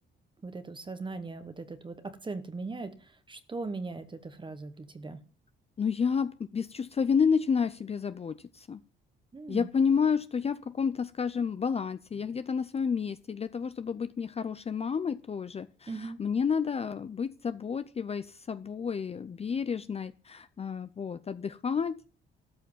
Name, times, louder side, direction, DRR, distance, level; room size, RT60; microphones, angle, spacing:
voice 1, 0.4-5.2 9.3-9.7 15.9-16.2, right 3 dB, 25° right, 1.0 m, -39 dB
voice 2, 5.8-8.8 9.5-22.0, left 6 dB, 30° left, 0.5 m, -30 dB
13.0 x 5.9 x 7.2 m
cardioid pair, 90°, 20 cm